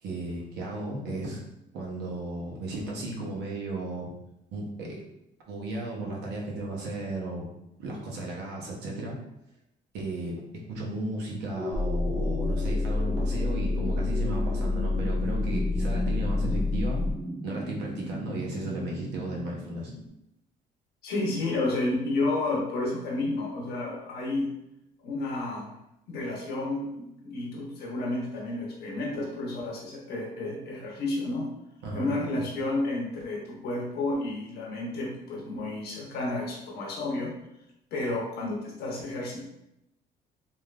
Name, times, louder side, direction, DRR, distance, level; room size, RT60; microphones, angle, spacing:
voice 1, 0.0-1.4 1.7-4.1 4.5-5.0 5.5-7.5 7.8-9.2 9.9-17.0 17.4-19.9 31.8-32.2, right 2 dB, 85° right, -2 dB, 0.9 m, -35 dB
sound 1, 11.5-20.1, equal, 20° right, 1.4 m, -37 dB
sound 2, 11.7-17.1, left 3 dB, 5° left, 0.7 m, -28 dB
voice 2, 21.0-24.5 25.0-25.7 26.1-31.5 31.9-37.3 37.9-39.4, left 2 dB, 70° left, -3 dB, 0.7 m, -31 dB
3.2 x 2.6 x 2.4 m, 0.86 s
cardioid pair, 110°, 17 cm